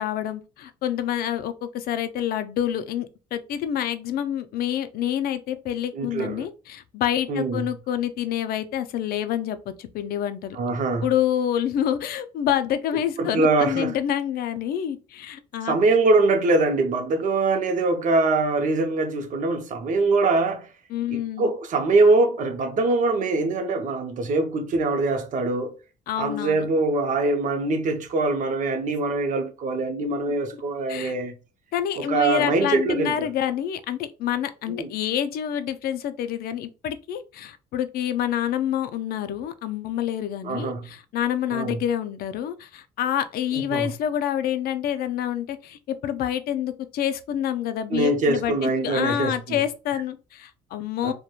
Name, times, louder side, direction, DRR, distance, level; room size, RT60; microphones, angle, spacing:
voice 1, 0.0-10.6 11.0-15.8 20.9-21.5 26.1-26.7 30.4-30.5 30.9-31.2 31.7-51.1, left 10 dB, 65° left, 0.4 m, -27 dB
voice 2, 5.9-6.5 7.3-7.7 10.6-11.1 13.2-13.9 15.7-20.7 21.4-25.7 26.2-31.4 32.0-33.3 34.7-34.9 40.4-40.9 41.5-41.8 43.5-43.9 47.9-49.6 51.0-51.1, right 3 dB, 50° right, 0.6 m, -23 dB
2.9 x 2.1 x 2.3 m
cardioid pair, 110°, 17 cm